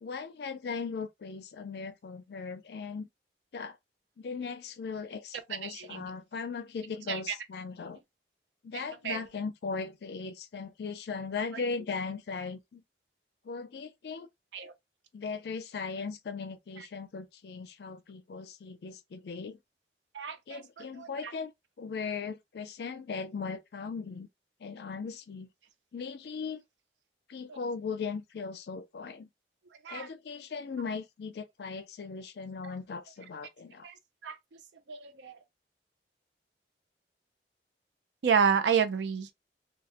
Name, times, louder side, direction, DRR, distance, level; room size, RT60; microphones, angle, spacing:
voice 1, 0.0-3.1 3.5-3.8 4.2-8.0 8.6-12.8 13.4-14.3 15.1-19.6 20.5-21.5 21.8-24.3 24.6-25.5 25.9-26.6 27.3-29.3 29.9-33.9, left 5 dB, 65° left, 0.4 m, -38 dB
voice 2, 5.6-6.0 7.1-7.3 8.7-9.2 14.5-14.7 16.8-16.9 20.1-20.6 21.0-21.3 29.8-30.1 33.8-33.9 34.2-34.4 34.9-35.4 38.2-39.3, right 7 dB, 85° right, 0.5 m, -30 dB
2.3 x 2.0 x 2.8 m
head